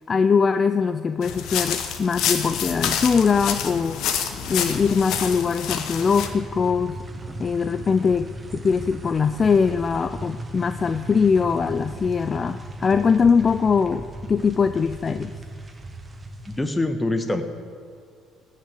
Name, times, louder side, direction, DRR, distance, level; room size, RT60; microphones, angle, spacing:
voice 1, 0.1-7.0 7.4-15.3, left 5 dB, 35° left, 11 dB, 0.4 m, -22 dB
sound 1, 1.2-6.3, left 8 dB, 75° left, 1.2 m, -27 dB
sound 2, 6.0-16.6, right 1 dB, 25° right, 1.4 m, -37 dB
voice 2, 16.5-17.4, left 2 dB, 15° left, 7 dB, 1.3 m, -24 dB
16.0 x 6.5 x 9.1 m, 2.1 s
cardioid pair, 90°, 0 cm